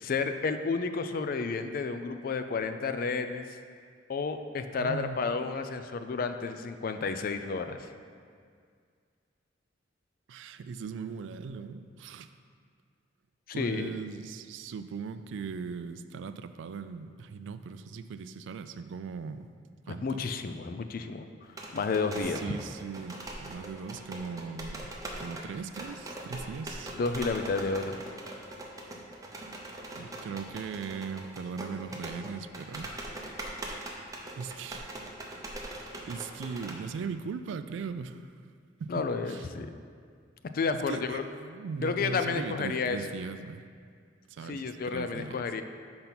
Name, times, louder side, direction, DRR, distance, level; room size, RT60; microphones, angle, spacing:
voice 1, 0.0-3.4 4.1-7.8 13.6-14.0 19.9-21.3 21.7-22.4 26.9-28.0 38.9-39.7 40.5-41.2 41.8-43.0 44.5-45.6, left 4 dB, 50° left, 8 dB, 0.4 m, -31 dB
voice 2, 4.8-5.2 10.3-12.3 13.5-19.5 19.9-20.2 22.3-24.9 25.2-26.9 29.9-33.3 34.4-35.0 36.1-38.3 38.8-39.5 40.7-43.6 44.3-45.5, right 5 dB, 75° right, 11 dB, 0.3 m, -39 dB
sound 1, 21.5-36.8, right 1 dB, 20° right, 0.6 m, -42 dB
5.4 x 4.4 x 5.8 m, 2.1 s
head